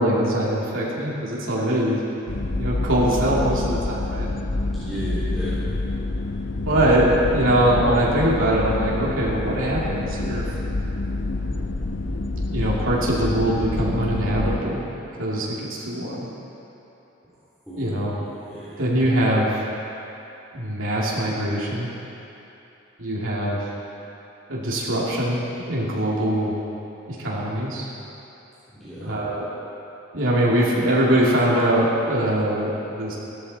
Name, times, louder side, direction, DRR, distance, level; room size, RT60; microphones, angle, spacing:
voice 1, 0.0-2.1 2.6-4.3 6.7-10.4 12.5-14.8 15.2-15.6 15.8-16.3 17.8-18.2 18.8-19.6 20.5-21.9 23.0-23.6 24.5-26.5 27.1-27.9 29.0-29.4 30.1-33.1, right 1 dB, 75° right, -6 dB, 2.6 m, -22 dB
sound 1, 2.3-14.6, left 2 dB, 65° left, 0.8 m, -27 dB
voice 2, 4.7-5.8 17.7-18.0 18.5-18.7 28.8-29.1, equal, ahead, -16 dB, 3.2 m, -34 dB
15.5 x 12.5 x 4.3 m, 3.0 s
head